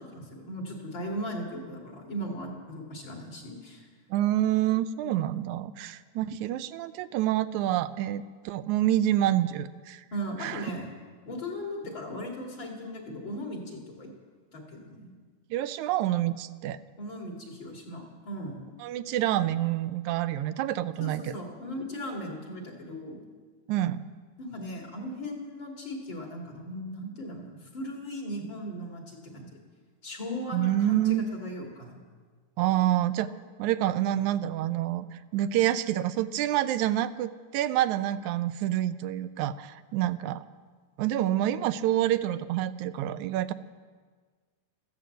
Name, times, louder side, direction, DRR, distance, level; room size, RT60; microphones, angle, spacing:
voice 1, 0.0-3.9 10.1-10.9 11.3-14.1 14.5-15.1 17.0-18.6 21.0-23.2 24.4-29.5 30.0-32.0, equal, 40° left, 0 dB, 2.9 m, -38 dB
voice 2, 4.1-10.0 10.4-10.7 15.5-16.8 18.8-21.4 23.7-24.0 30.5-31.3 32.6-33.3 33.6-40.4 41.0-43.5, right 13 dB, 85° right, 12 dB, 2.0 m, -27 dB
14.5 x 12.0 x 7.8 m, 1.5 s
omnidirectional pair, 3.3 m